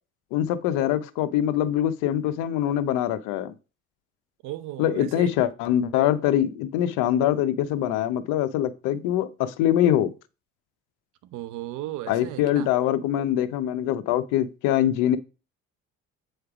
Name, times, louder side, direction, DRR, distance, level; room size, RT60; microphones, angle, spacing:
voice 1, 0.3-3.5 4.8-10.1 12.1-15.2, left 11 dB, 90° left, 0.7 m, -23 dB
voice 2, 4.4-5.3 11.2-12.7, right 14 dB, 80° right, 0.7 m, -35 dB
7.8 x 3.3 x 4.9 m
cardioid pair, 95°, 30 cm